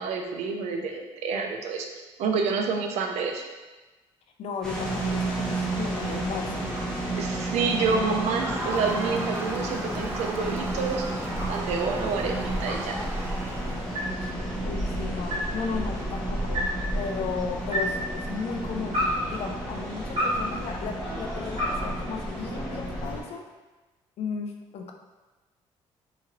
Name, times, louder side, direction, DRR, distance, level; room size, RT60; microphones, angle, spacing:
voice 1, 0.0-1.9 2.2-3.4 7.2-11.0 11.5-12.9, right 4 dB, 80° right, 3 dB, 0.4 m, -28 dB
voice 2, 4.4-6.7 14.2-14.3 14.6-16.7 16.9-23.4 24.2-24.9, left 5 dB, 65° left, 3 dB, 0.4 m, -35 dB
sound 1, 4.6-23.2, right 1 dB, 5° left, 0.9 m, -32 dB
sound 2, 5.1-22.9, equal, 65° right, 1.4 m, -36 dB
Crowd, 7.4-14.2, right 1 dB, 20° right, 0.5 m, -37 dB
3.0 x 2.9 x 2.4 m, 1.2 s
cardioid pair, 95°, 11 cm